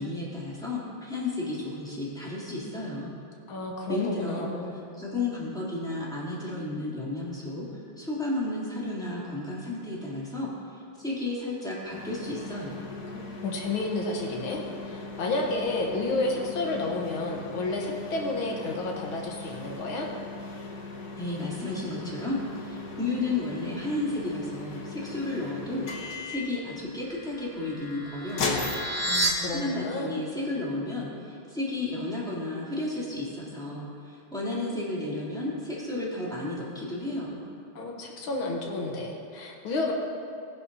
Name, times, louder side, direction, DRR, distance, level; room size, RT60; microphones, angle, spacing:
voice 1, 0.0-3.1 3.9-4.5 4.7-12.8 21.2-25.9 26.2-28.7 29.5-37.4, left 2 dB, ahead, -8 dB, 3.0 m, -33 dB
voice 2, 3.5-4.7 13.1-20.1 29.0-30.1 37.8-39.9, left 2 dB, 85° left, 0 dB, 2.0 m, -31 dB
sound 1, 11.9-29.7, left 3 dB, 55° left, 1.6 m, -38 dB
sound 2, 27.1-29.3, right 1 dB, 20° left, 1.0 m, -31 dB
19.5 x 10.5 x 2.8 m, 2.4 s
omnidirectional pair, 2.2 m